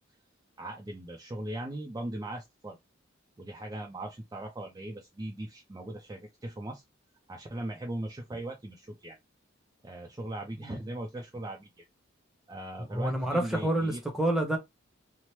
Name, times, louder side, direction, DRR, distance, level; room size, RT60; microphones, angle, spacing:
voice 1, 0.6-2.8 3.4-6.8 7.3-9.2 9.8-11.8 12.5-14.0, right 1 dB, 20° right, 0.3 m, -39 dB
voice 2, 12.9-14.6, right 1 dB, ahead, 0.7 m, -28 dB
2.9 x 2.0 x 3.0 m
head